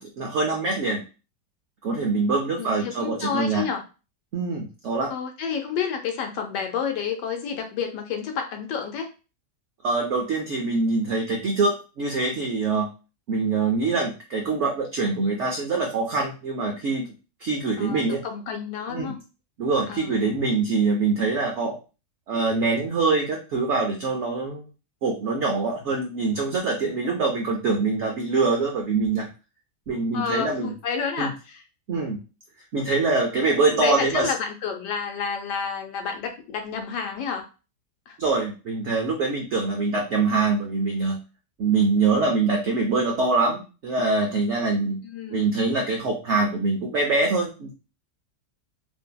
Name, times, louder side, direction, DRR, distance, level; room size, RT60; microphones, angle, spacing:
voice 1, 0.0-1.0 1.8-3.6 4.3-5.1 9.8-12.9 13.3-17.1 17.4-18.2 18.9-19.1 19.6-21.8 22.3-24.6 25.0-29.3 29.9-30.7 31.2-31.3 31.9-32.2 32.7-34.3 38.2-41.2 41.6-45.0 45.3-47.8, right 3 dB, 85° right, 0 dB, 0.6 m, -24 dB
voice 2, 2.6-3.8 5.1-9.1 17.8-19.2 19.9-20.2 30.1-31.6 33.7-37.5 38.1-38.2 45.0-45.5, left 6 dB, 85° left, 4 dB, 1.2 m, -30 dB
2.6 x 2.6 x 2.2 m, 0.32 s
omnidirectional pair, 1.8 m